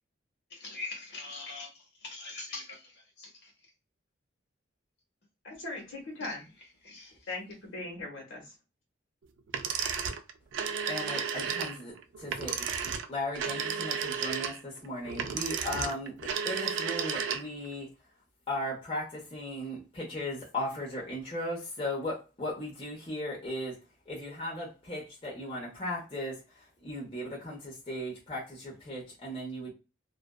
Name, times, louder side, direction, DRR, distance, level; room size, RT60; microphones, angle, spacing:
voice 1, 0.5-3.5 6.2-6.3 6.8-7.3, left 3 dB, 55° left, 1.1 m, -43 dB
voice 2, 5.4-6.4 7.3-8.5, left 2 dB, 80° left, 1.0 m, -39 dB
sound 1, 9.5-17.7, right 6 dB, 70° right, 0.3 m, -33 dB
voice 3, 10.9-17.9 18.5-29.7, left 1 dB, 30° left, 0.8 m, -37 dB
2.5 x 2.2 x 2.2 m
head